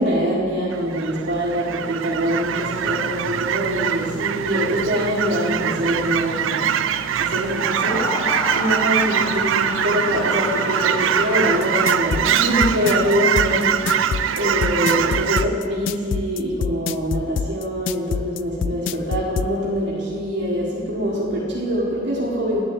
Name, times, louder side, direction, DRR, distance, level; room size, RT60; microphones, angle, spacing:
voice 1, 0.0-8.1 8.5-13.9 14.4-22.6, equal, 65° right, -7 dB, 1.8 m, -24 dB
Fowl / Chirp tweet, 0.7-15.5, right 9 dB, 90° right, 0.4 m, -23 dB
Screaming, 7.5-12.4, left 1 dB, 15° left, 1.2 m, -30 dB
sound 1, 11.6-19.5, left 6 dB, 75° left, 0.3 m, -25 dB
10.0 x 6.6 x 9.0 m, 2.2 s
head